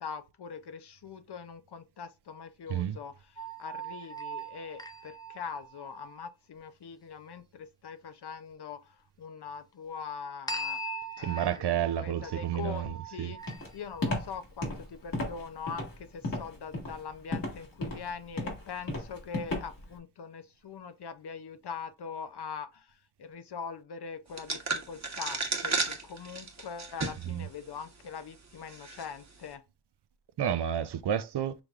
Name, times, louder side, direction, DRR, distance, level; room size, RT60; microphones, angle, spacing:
voice 1, 0.0-13.5 13.7-29.6, left 6 dB, 70° left, 0.7 m, -42 dB
sound 1, 3.4-6.2 10.5-14.0, right 2 dB, 10° left, 0.5 m, -40 dB
voice 2, 11.2-13.3 27.3-27.5 30.4-31.5, right 10 dB, 70° right, 0.6 m, -30 dB
Walk footsteps, 13.5-19.9, left 2 dB, 55° left, 1.8 m, -35 dB
sound 2, 24.4-27.3 27.8-27.9 28.7-29.0, right 4 dB, 40° right, 1.1 m, -33 dB
5.9 x 3.4 x 2.4 m
wide cardioid pair, 105°, 42 cm